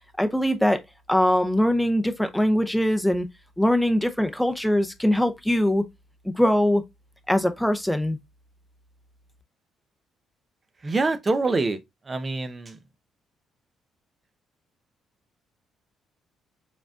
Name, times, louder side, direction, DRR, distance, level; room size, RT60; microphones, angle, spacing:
voice 1, 0.2-0.8 1.1-3.3 3.6-5.8 6.2-6.8 7.3-8.2, left 1 dB, 5° left, 0.7 m, -22 dB
voice 2, 10.8-11.8 12.1-12.8, right 3 dB, 35° right, 0.7 m, -25 dB
4.8 x 3.5 x 2.3 m
supercardioid pair, 60°, 0 cm